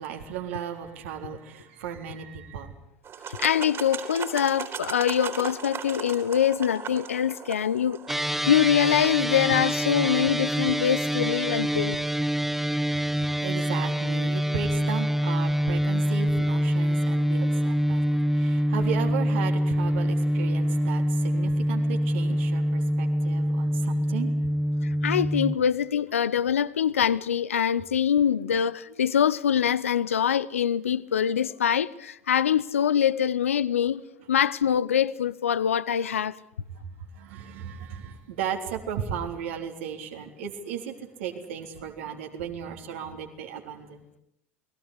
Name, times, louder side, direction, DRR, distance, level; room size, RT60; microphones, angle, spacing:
voice 1, 0.0-2.7 12.8-24.3 36.7-44.0, right 8 dB, 65° right, 3.8 m, -36 dB
sound 1, 3.0-12.1, right 7 dB, 35° right, 4.1 m, -39 dB
voice 2, 3.3-8.0 8.5-12.0 24.8-34.0 34.3-36.3, left 9 dB, 80° left, 0.9 m, -24 dB
sound 2, 8.1-25.5, equal, 5° right, 0.9 m, -25 dB
29.5 x 20.0 x 8.3 m
hypercardioid pair, 80°, 7 cm